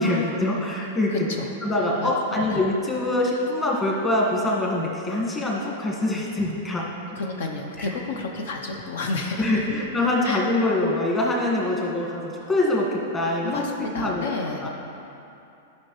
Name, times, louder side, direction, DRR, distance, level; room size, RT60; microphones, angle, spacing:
voice 1, 0.0-1.1 1.6-6.8 7.8-7.9 9.4-14.2 14.6-14.7, left 1 dB, 15° left, -3 dB, 1.5 m, -24 dB
voice 2, 1.1-1.7 2.0-2.6 7.1-9.6 10.2-10.5 13.4-14.7, left 3 dB, 75° left, 2 dB, 0.7 m, -31 dB
11.5 x 5.6 x 3.1 m, 2.8 s
hypercardioid pair, 135°, 0 cm